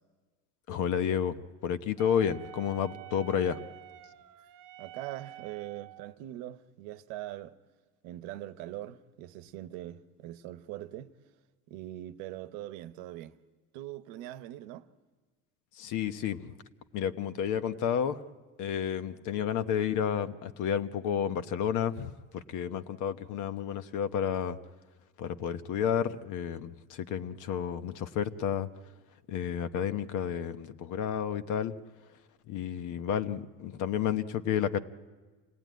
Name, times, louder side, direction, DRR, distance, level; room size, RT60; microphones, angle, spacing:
voice 1, 0.7-3.6 15.7-16.6 16.9-18.2 18.6-24.6 25.2-28.7 29.3-31.7 32.5-34.8, left 8 dB, 60° left, 1.1 m, -31 dB
Wind instrument woodwind instrument, 2.0-6.2, right 15 dB, 60° right, 0.9 m, -49 dB
voice 2, 4.8-7.6 8.0-11.1 11.7-13.4 13.7-14.9, right 14 dB, 90° right, 1.0 m, -42 dB
26.5 x 18.0 x 9.3 m
cardioid pair, 140°, 35 cm